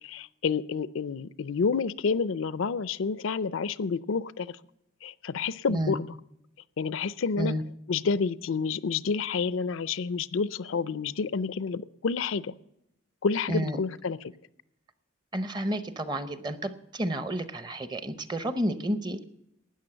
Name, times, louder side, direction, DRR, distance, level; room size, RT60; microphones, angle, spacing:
voice 1, 0.0-4.6 5.0-6.1 6.8-7.5 7.9-12.5 13.2-14.2, left 5 dB, 70° left, 17 dB, 0.5 m, -29 dB
voice 2, 13.5-13.8 15.3-19.2, right 1 dB, 20° right, 12 dB, 0.7 m, -30 dB
13.0 x 9.3 x 7.7 m, 0.83 s
head